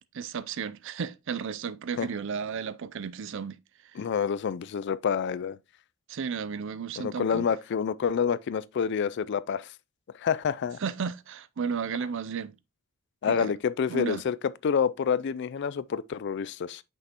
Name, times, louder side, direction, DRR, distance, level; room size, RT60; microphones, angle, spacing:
voice 1, 0.1-3.6 6.1-7.5 10.8-12.5 13.3-13.5 13.9-14.2, right 6 dB, 60° right, 0.5 m, -33 dB
voice 2, 4.0-5.6 7.0-9.7 10.2-10.8 13.2-16.8, left 7 dB, 55° left, 0.3 m, -28 dB
6.1 x 5.4 x 2.9 m
head